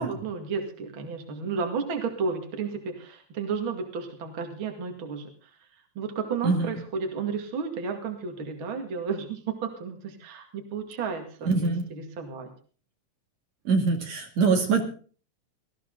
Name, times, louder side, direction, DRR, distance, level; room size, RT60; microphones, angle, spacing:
voice 1, 0.0-5.5 6.0-12.5, right 5 dB, 45° right, 5 dB, 2.8 m, -32 dB
voice 2, 11.5-11.9 13.6-14.9, right 4 dB, 65° right, 3 dB, 3.4 m, -24 dB
19.5 x 14.5 x 3.9 m, 0.41 s
omnidirectional pair, 3.4 m